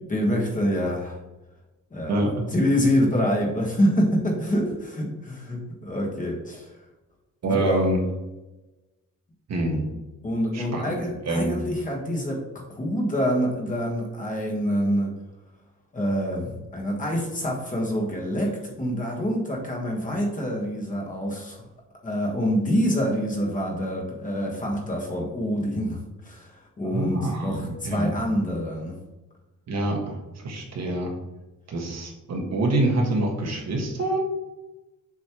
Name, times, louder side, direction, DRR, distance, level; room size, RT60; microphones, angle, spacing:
voice 1, 0.1-1.2 1.9-2.2 2.5-6.7 7.5-7.9 9.7-9.9 10.2-12.4 12.7-15.1 15.9-21.7 22.0-29.0, equal, 25° left, -1 dB, 1.6 m, -26 dB
voice 2, 2.1-2.5 7.4-8.0 9.5-9.8 10.5-11.5 26.8-28.1 29.7-31.1 31.7-34.2, right 1 dB, 50° right, 1 dB, 1.5 m, -26 dB
7.3 x 5.3 x 3.1 m, 1.1 s
cardioid pair, 160°, 33 cm